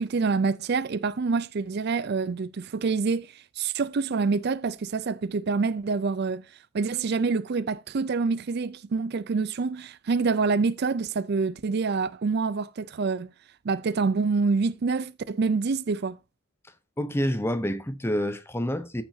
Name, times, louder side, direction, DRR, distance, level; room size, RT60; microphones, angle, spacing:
voice 1, 0.0-6.5 6.7-13.3 13.6-16.2, right 4 dB, 50° right, 0.4 m, -26 dB
voice 2, 17.0-19.0, equal, 10° left, 0.8 m, -28 dB
14.5 x 5.8 x 2.7 m
head